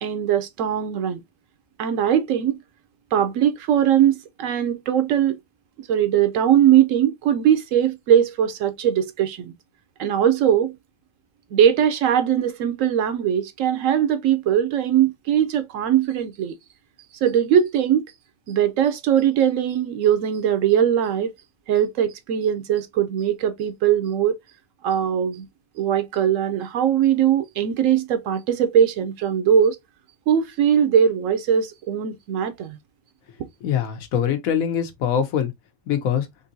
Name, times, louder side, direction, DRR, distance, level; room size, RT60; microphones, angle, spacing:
voice 1, 0.0-1.2 1.8-2.6 3.1-5.4 5.8-9.5 10.0-10.8 11.5-16.6 17.2-18.0 18.5-21.3 21.7-24.4 24.8-25.5 25.8-29.8 30.3-32.8, right 9 dB, 70° right, 0.9 m, -20 dB
voice 2, 33.6-35.5 35.9-36.3, left 8 dB, 75° left, 1.2 m, -23 dB
3.7 x 2.6 x 2.6 m
omnidirectional pair, 1.5 m